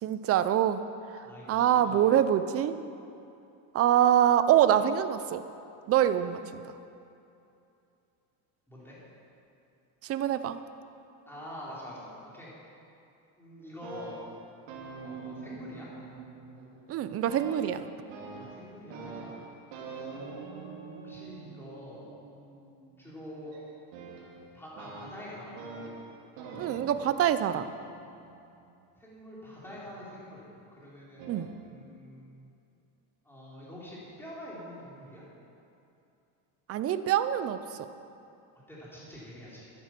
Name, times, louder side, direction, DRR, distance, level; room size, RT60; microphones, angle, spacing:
voice 1, 0.0-0.8 1.1-2.7 3.7-5.4 5.9-6.6 10.0-10.6 16.9-17.8 26.6-27.7 31.3-31.5 36.7-37.9, right 10 dB, 30° right, 12 dB, 0.5 m, -25 dB
voice 2, 1.2-2.2 8.7-9.0 11.3-12.5 13.4-14.3 15.0-15.9 18.4-19.4 19.8-20.1 20.5-22.1 23.0-23.6 24.5-25.6 29.0-31.3 31.6-32.5 33.2-35.3 38.7-39.7, left 1 dB, 5° left, -7 dB, 3.9 m, -46 dB
sound 1, 13.6-16.9 17.3-28.8 29.7-30.5 31.2-31.6, right 4 dB, 85° right, 3.0 m, -45 dB
13.0 x 11.0 x 6.0 m, 2.7 s
cardioid pair, 145°, 48 cm